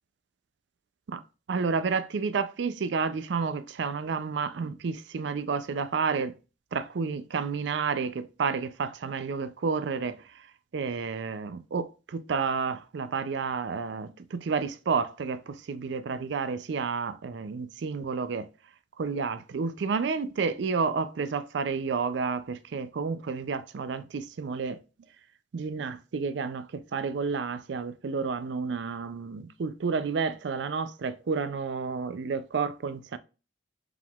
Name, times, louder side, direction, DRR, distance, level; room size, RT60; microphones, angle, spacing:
voice 1, 1.5-6.3 6.7-10.2 10.7-18.5 19.0-24.8 25.5-33.2, right 5 dB, 65° right, 0.4 m, -30 dB
4.8 x 3.6 x 2.3 m
head